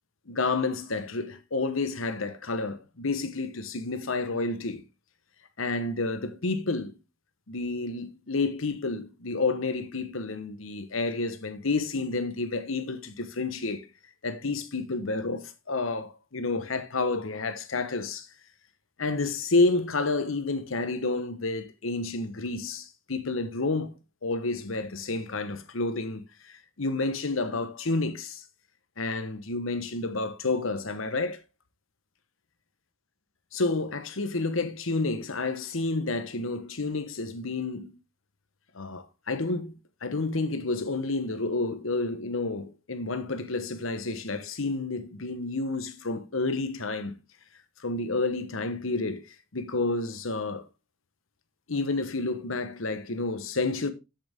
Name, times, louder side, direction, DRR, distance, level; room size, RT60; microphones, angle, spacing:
voice 1, 0.3-4.8 5.6-7.0 7.5-13.9 14.2-18.3 19.0-23.9 24.2-28.4 29.0-31.4 33.5-38.0 38.7-47.2 47.8-50.6 51.7-53.9, left 3 dB, 80° left, 1.1 m, -30 dB
7.9 x 7.3 x 3.5 m
head